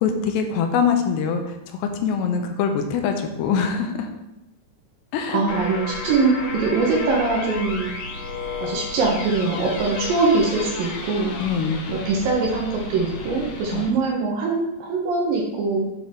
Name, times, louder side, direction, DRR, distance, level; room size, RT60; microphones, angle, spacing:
voice 1, 0.0-1.4 1.8-4.1 5.1-5.4 11.4-11.8 13.7-13.9, left 6 dB, 90° left, 5 dB, 2.8 m, -23 dB
voice 2, 5.3-7.9 8.6-11.3 11.9-15.9, right 3 dB, 70° right, -2 dB, 2.3 m, -22 dB
sound 1, 5.5-13.9, left 3 dB, 70° left, 2.4 m, -33 dB
8.8 x 4.4 x 3.5 m, 0.95 s
omnidirectional pair, 4.9 m